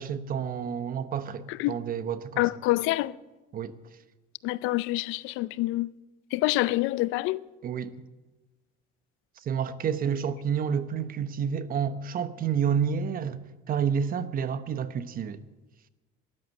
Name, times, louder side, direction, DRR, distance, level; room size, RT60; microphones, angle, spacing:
voice 1, 0.0-2.4 3.5-3.7 7.6-7.9 9.4-13.4 13.7-15.4, right 7 dB, 45° right, 1.0 m, -29 dB
voice 2, 1.5-1.8 2.4-3.1 4.4-5.9 6.3-7.4, left 18 dB, 80° left, 0.5 m, -27 dB
13.0 x 11.0 x 7.8 m
cardioid pair, 115°, 20 cm